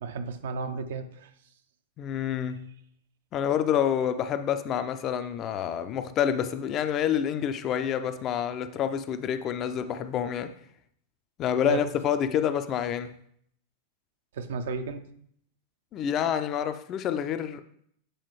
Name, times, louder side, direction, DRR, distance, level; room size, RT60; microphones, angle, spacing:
voice 1, 0.0-1.3 11.6-11.8 14.3-15.0, right 5 dB, 60° right, 8 dB, 0.5 m, -33 dB
voice 2, 2.0-2.7 3.3-10.5 11.4-13.1 15.9-17.6, left 9 dB, 35° left, 10 dB, 0.4 m, -28 dB
7.7 x 4.1 x 3.1 m, 0.65 s
figure-of-eight pair, 90°, 0 cm